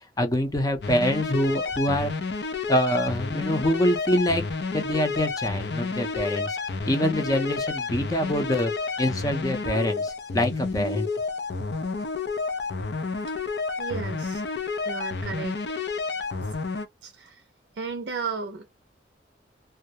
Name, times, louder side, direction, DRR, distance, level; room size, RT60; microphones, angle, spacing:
voice 1, 0.2-2.1 2.7-4.4 4.7-6.6 6.9-8.7 9.0-11.1, equal, 20° left, 0.5 m, -25 dB
sound 1, 0.8-16.9, left 4 dB, 70° left, 0.5 m, -30 dB
voice 2, 13.8-14.5 14.8-15.8 16.4-16.5 17.0-17.4 17.8-18.7, right 5 dB, 80° right, 0.5 m, -34 dB
2.3 x 2.0 x 2.8 m
head